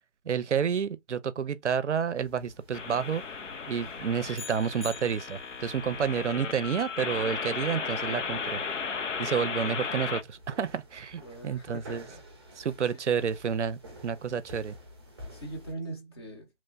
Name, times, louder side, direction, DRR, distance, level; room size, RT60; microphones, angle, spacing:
voice 1, 0.3-3.2 3.7-8.6 9.2-12.0 12.6-14.8, right 7 dB, 75° right, 0.5 m, -30 dB
sound 1, 2.1-15.7, equal, 20° right, 0.6 m, -51 dB
sound 2, 2.7-10.2, left 5 dB, 85° left, 0.6 m, -35 dB
sound 3, 4.3-5.8, left 4 dB, 65° left, 1.0 m, -44 dB
voice 2, 11.2-12.2 15.3-16.5, right 2 dB, 20° left, 0.7 m, -41 dB
3.0 x 2.1 x 2.4 m
figure-of-eight pair, 145°, 36 cm